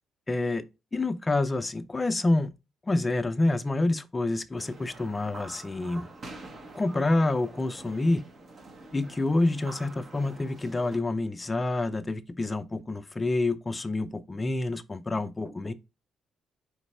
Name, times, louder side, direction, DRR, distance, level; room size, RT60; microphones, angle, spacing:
voice 1, 0.3-0.6 0.9-2.5 2.9-6.1 6.8-8.3 8.9-15.7, left 2 dB, 25° left, 0.4 m, -27 dB
sound 1, 4.6-11.0, right 2 dB, 45° right, 1.1 m, -46 dB
5.1 x 3.2 x 3.1 m
cardioid pair, 90°, 0 cm